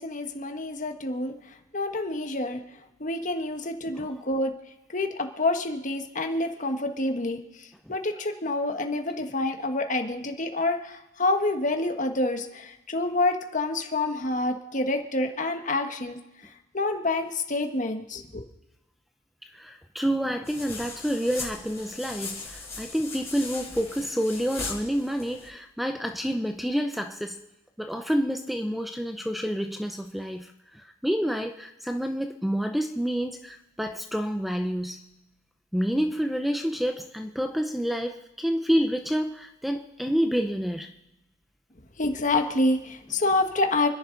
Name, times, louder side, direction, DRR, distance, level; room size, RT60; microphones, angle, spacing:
voice 1, 0.0-1.3 1.7-2.6 3.0-4.5 4.9-7.4 7.9-16.2 16.7-18.4 42.0-43.9, left 2 dB, 40° left, 6 dB, 1.5 m, -27 dB
voice 2, 19.5-27.4 27.8-35.0 35.7-40.9, equal, ahead, 6 dB, 0.7 m, -28 dB
sound 1, 20.4-25.5, left 4 dB, 15° left, 5.3 m, -39 dB
28.5 x 10.5 x 4.0 m, 0.95 s
head